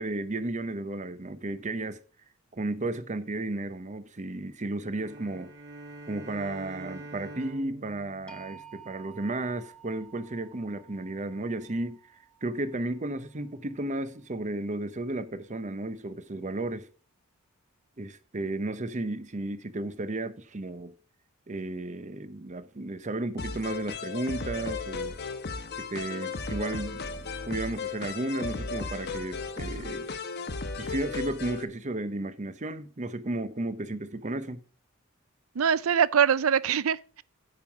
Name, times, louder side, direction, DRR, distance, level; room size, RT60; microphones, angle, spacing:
voice 1, 0.0-2.0 2.5-5.5 6.1-12.0 12.4-16.9 18.0-20.9 21.5-25.2 25.8-30.0 30.8-34.6, right 2 dB, 35° right, 0.8 m, -33 dB
sound 1, 4.8-9.3, right 2 dB, 55° right, 2.2 m, -45 dB
sound 2, 8.3-14.3, right 7 dB, 5° left, 0.7 m, -53 dB
sound 3, 23.4-31.6, left 4 dB, 50° left, 1.0 m, -35 dB
voice 2, 35.6-37.2, right 7 dB, 75° right, 0.5 m, -23 dB
9.6 x 5.5 x 5.9 m
head